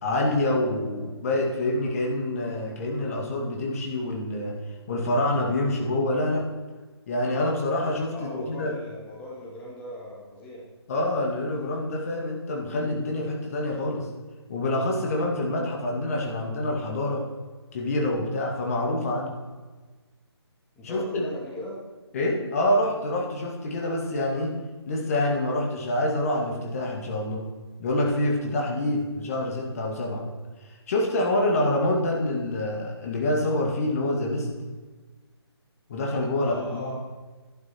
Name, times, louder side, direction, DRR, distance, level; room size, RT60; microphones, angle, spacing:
voice 1, 0.0-4.5 4.9-6.5 7.1-8.7 10.9-14.1 14.5-17.2 17.7-19.3 20.8-21.3 22.1-24.6 24.9-27.5 27.8-30.2 30.9-34.5 35.9-36.9, left 1 dB, 35° left, -1 dB, 2.1 m, -26 dB
voice 2, 8.1-10.7 20.8-21.8 28.8-29.1 36.4-36.9, left 1 dB, 10° left, -4 dB, 1.9 m, -39 dB
12.5 x 11.5 x 4.4 m, 1.3 s
figure-of-eight pair, 145°, 14 cm